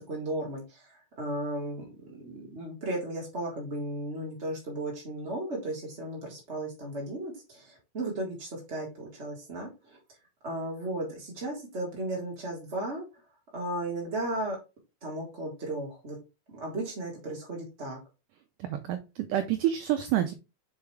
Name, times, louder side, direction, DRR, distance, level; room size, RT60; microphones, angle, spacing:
voice 1, 0.0-10.0 10.4-13.0 13.5-14.6 15.0-16.2 16.5-18.0, right 1 dB, 45° right, -2 dB, 0.8 m, -35 dB
voice 2, 18.6-20.3, right 12 dB, 85° right, 7 dB, 1.8 m, -28 dB
7.0 x 4.6 x 3.3 m, 0.27 s
omnidirectional pair, 4.4 m